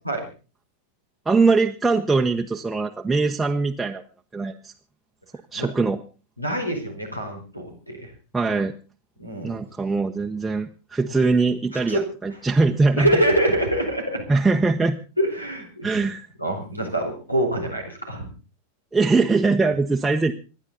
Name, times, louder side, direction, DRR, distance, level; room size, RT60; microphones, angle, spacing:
voice 1, 1.3-4.0 4.3-4.7 5.5-6.0 8.3-8.7 9.4-13.1 14.3-15.0 15.8-16.3 18.9-20.3, right 3 dB, 10° right, 1 dB, 1.0 m, -21 dB
voice 2, 6.4-8.1 9.2-9.6 11.9-12.0 13.0-14.2 15.2-16.0 16.4-18.3, right 1 dB, 90° left, 4 dB, 4.7 m, -25 dB
26.0 x 11.0 x 4.1 m, 0.35 s
figure-of-eight pair, 90°, 0 cm